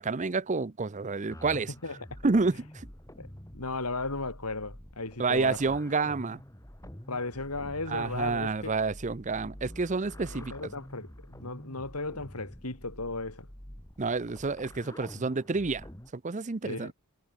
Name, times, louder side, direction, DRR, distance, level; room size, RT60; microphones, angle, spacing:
voice 1, 0.0-1.7 2.2-2.9 5.2-6.4 7.9-10.5 14.0-15.9 16.1-16.9, right 4 dB, 35° right, 0.6 m, -29 dB
sound 1, 1.3-16.1, equal, 15° left, 2.1 m, -48 dB
voice 2, 3.5-5.7 7.1-8.7 10.3-13.5 16.6-16.9, left 3 dB, 85° left, 4.0 m, -36 dB
head